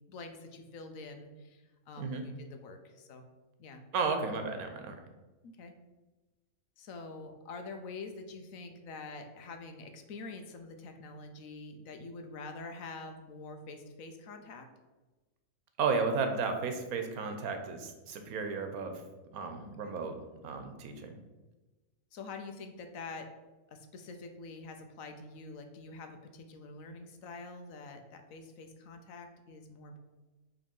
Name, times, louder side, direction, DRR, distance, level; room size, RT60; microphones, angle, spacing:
voice 1, 0.1-3.2 3.6-3.8 5.4-5.7 6.8-14.7 19.6-19.9 22.1-23.3 23.7-30.0, left 3 dB, 70° left, 6 dB, 1.1 m, -46 dB
voice 2, 3.9-5.0 15.8-19.0 19.3-20.1 20.4-21.1, right 4 dB, 90° right, 6 dB, 1.3 m, -33 dB
5.3 x 3.5 x 5.2 m, 1.2 s
omnidirectional pair, 1.5 m